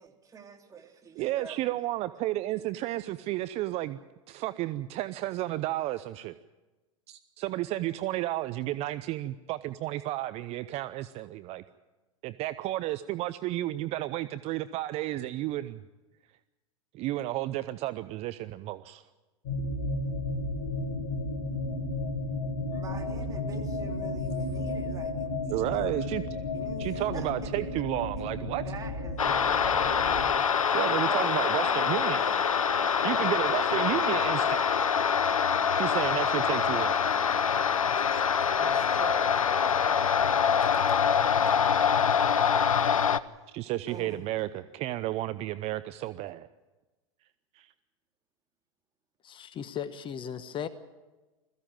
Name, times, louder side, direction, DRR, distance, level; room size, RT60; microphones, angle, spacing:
voice 1, 0.0-1.7 22.7-26.0 26.5-27.6 28.6-30.4 30.9-32.5 32.8-33.0 37.8-41.9 43.9-44.3, right 5 dB, 20° right, 3 dB, 3.0 m, -46 dB
voice 2, 1.2-4.0 4.3-6.3 7.1-11.6 12.2-15.8 16.9-19.0 25.5-26.2 26.8-28.6 30.7-32.2 33.0-34.6 35.8-37.0 43.5-46.5 47.5-47.7, right 16 dB, 40° right, 13 dB, 0.7 m, -32 dB
sound 1, 19.5-30.3, left 2 dB, 55° left, 4.0 m, -33 dB
sound 2, 29.2-43.2, left 7 dB, 85° left, 0.8 m, -25 dB
voice 3, 49.2-50.7, left 8 dB, 30° left, 13 dB, 1.1 m, -36 dB
21.0 x 15.5 x 9.0 m, 1.2 s
hypercardioid pair, 100°, 17 cm